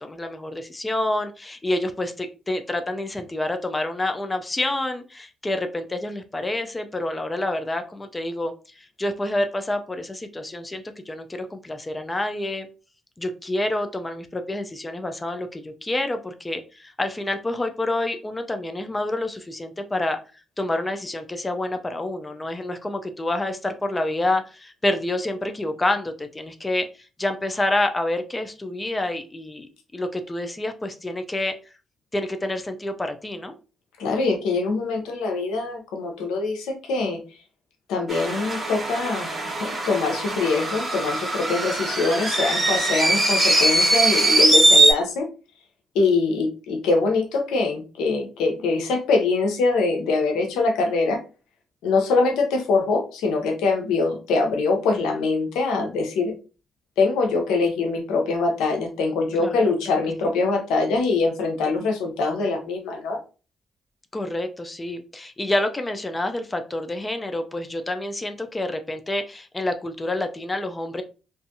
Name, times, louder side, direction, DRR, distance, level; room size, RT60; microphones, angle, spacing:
voice 1, 0.0-12.7 13.2-20.2 20.6-31.5 32.1-33.6 59.4-59.7 64.1-71.0, left 1 dB, 20° left, 7 dB, 0.4 m, -28 dB
voice 2, 34.0-37.2 37.9-39.3 39.6-45.3 45.9-51.2 51.8-56.3 57.0-63.2, left 3 dB, 90° left, 3 dB, 0.6 m, -23 dB
sound 1, 38.1-44.9, right 2 dB, 20° right, 1.3 m, -21 dB
2.5 x 2.3 x 2.6 m, 0.34 s
supercardioid pair, 70°, 0 cm